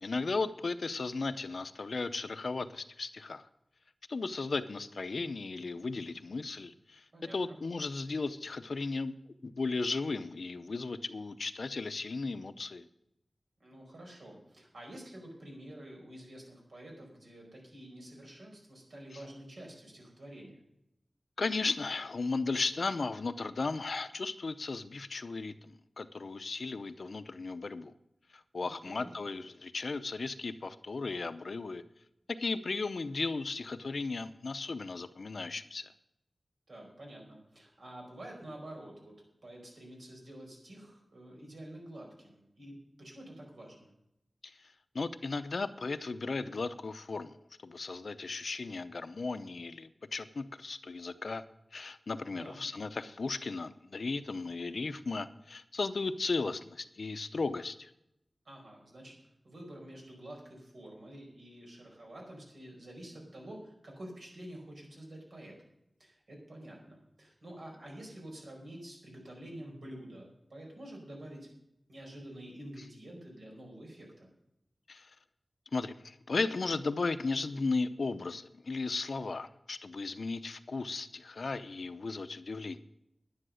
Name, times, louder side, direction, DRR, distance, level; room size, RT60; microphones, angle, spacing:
voice 1, 0.0-3.5 4.1-7.0 7.3-9.1 9.4-12.9 21.4-27.9 28.5-31.8 32.3-35.8 44.4-44.5 44.9-47.3 47.6-51.4 51.7-57.9 74.9-75.1 75.7-82.8, left 3 dB, 70° left, 11 dB, 0.7 m, -35 dB
voice 2, 7.1-7.6 13.6-20.6 28.6-29.1 36.7-39.2 39.4-43.9 52.3-52.6 58.4-59.2 59.4-65.6 66.0-71.5 71.9-74.3, right 1 dB, 80° right, 0 dB, 4.9 m, -48 dB
10.5 x 10.0 x 6.4 m, 0.82 s
wide cardioid pair, 90°, 0 cm